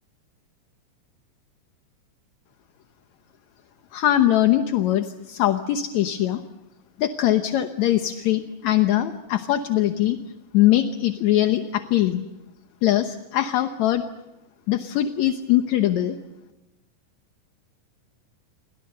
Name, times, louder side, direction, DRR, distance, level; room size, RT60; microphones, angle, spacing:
voice 1, 3.9-6.4 7.0-10.2 10.5-12.2 12.8-14.0 14.7-16.2, left 13 dB, 65° left, 7 dB, 2.0 m, -21 dB
29.0 x 24.5 x 6.7 m, 0.99 s
omnidirectional pair, 4.0 m